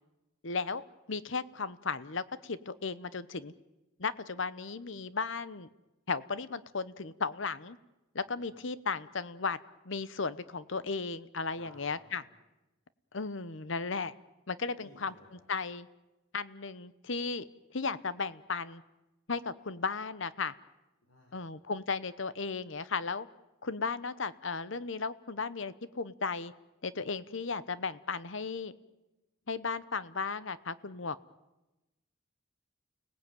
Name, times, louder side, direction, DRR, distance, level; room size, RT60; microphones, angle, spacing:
voice 1, 0.4-3.5 4.0-5.7 6.1-7.8 8.1-9.6 9.8-12.2 13.1-14.1 14.5-15.1 15.5-15.9 16.3-17.5 17.7-18.8 19.3-19.4 19.7-20.5 21.3-23.3 23.6-26.5 26.8-28.7 29.5-31.2, left 4 dB, 65° left, 15 dB, 0.9 m, -35 dB
voice 2, 8.2-8.5 11.5-12.2 14.8-15.5 19.3-19.4 21.0-21.6, left 1 dB, 80° left, 0 dB, 5.0 m, -58 dB
30.0 x 18.5 x 9.1 m, 1.0 s
head